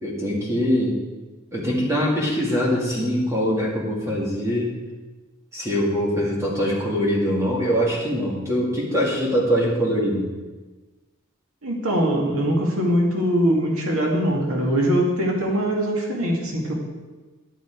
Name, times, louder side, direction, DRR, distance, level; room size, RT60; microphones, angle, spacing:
voice 1, 0.0-1.0 1.5-4.7 5.5-10.3, equal, 15° right, -4 dB, 2.1 m, -23 dB
voice 2, 11.6-16.7, equal, 90° right, 0 dB, 2.1 m, -22 dB
10.5 x 9.6 x 4.7 m, 1.2 s
head